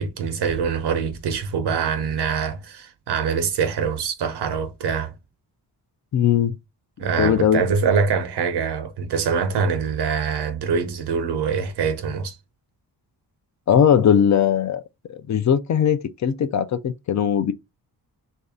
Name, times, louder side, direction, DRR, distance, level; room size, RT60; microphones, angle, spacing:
voice 1, 0.0-5.1 7.0-12.4, right 6 dB, 85° right, 0.9 m, -24 dB
voice 2, 6.1-6.5 7.2-7.6 13.7-14.8 15.1-17.5, left 8 dB, 45° left, 0.4 m, -19 dB
3.1 x 2.7 x 3.6 m
wide cardioid pair, 150°, 39 cm